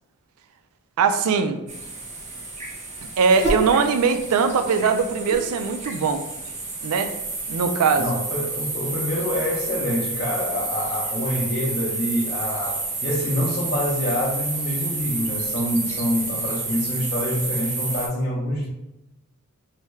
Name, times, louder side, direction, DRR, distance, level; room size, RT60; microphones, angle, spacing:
voice 1, 1.0-1.6 3.2-6.2 6.8-7.1 7.5-8.1, right 5 dB, 80° right, 7 dB, 0.3 m, -21 dB
sound 1, 1.7-18.1, right 3 dB, 30° right, 0.6 m, -30 dB
voice 2, 8.0-18.7, left 1 dB, 45° left, -6 dB, 0.5 m, -26 dB
3.2 x 2.3 x 3.1 m, 0.93 s
head